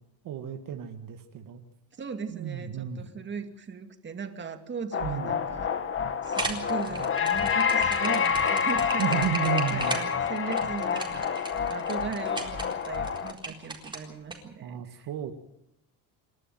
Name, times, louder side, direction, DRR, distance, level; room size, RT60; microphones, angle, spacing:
voice 1, 0.2-1.6 2.3-3.0 5.0-5.3 9.0-10.0 14.6-15.3, right 9 dB, 60° right, 5 dB, 1.9 m, -32 dB
voice 2, 1.9-5.7 6.2-11.3 11.7-15.1, right 5 dB, 30° right, 6 dB, 2.3 m, -38 dB
sound 1, 4.9-13.3, left 6 dB, 35° left, 1.8 m, -28 dB
sound 2, 6.2-14.4, right 3 dB, 10° right, 4.2 m, -36 dB
28.5 x 12.0 x 9.2 m, 0.81 s
cardioid pair, 145°, 38 cm